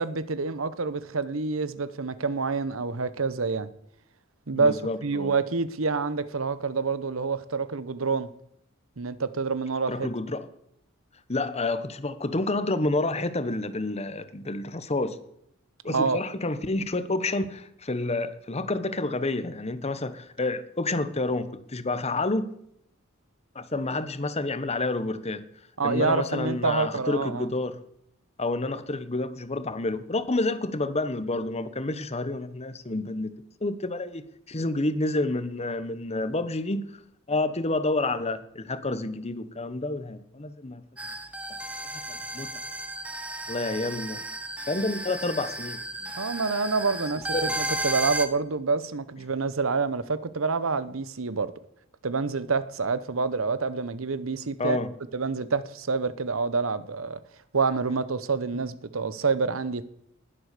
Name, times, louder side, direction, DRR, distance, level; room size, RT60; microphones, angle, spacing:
voice 1, 0.0-3.7 4.5-8.3 9.0-10.1 15.9-16.2 25.8-27.5 46.0-47.3 47.6-51.5 52.0-54.8 55.1-57.2 57.5-59.8, right 4 dB, 75° right, 1.0 m, -27 dB
voice 2, 4.5-5.3 9.9-10.5 11.3-15.2 15.8-22.6 23.5-25.4 25.8-27.8 28.4-33.3 33.6-36.9 37.3-40.8 41.9-42.5 43.5-44.3 44.7-45.8 47.3-47.6 54.6-54.9, left 2 dB, 30° left, 1.1 m, -29 dB
sound 1, 41.0-48.3, right 1 dB, 5° right, 1.0 m, -34 dB
20.0 x 8.1 x 6.7 m
head